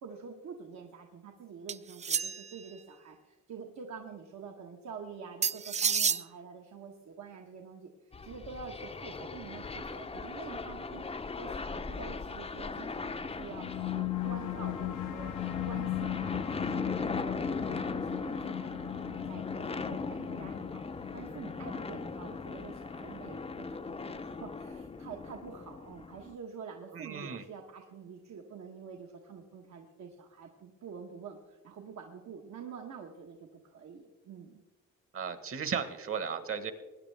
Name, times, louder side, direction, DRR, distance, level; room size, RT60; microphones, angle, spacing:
voice 1, 0.0-11.1 11.4-15.3 15.6-34.6, right 6 dB, 65° right, 2 dB, 1.3 m, -47 dB
sound 1, 1.7-2.6 5.4-6.2, right 6 dB, 25° right, 0.4 m, -29 dB
sound 2, 8.1-26.3, left 4 dB, 20° left, 0.6 m, -39 dB
sound 3, 13.4-24.3, left 16 dB, 80° left, 0.7 m, -38 dB
voice 2, 26.9-27.4 35.1-36.7, right 6 dB, 45° right, 10 dB, 1.4 m, -35 dB
20.5 x 9.8 x 3.4 m, 1.2 s
cardioid pair, 90°, 30 cm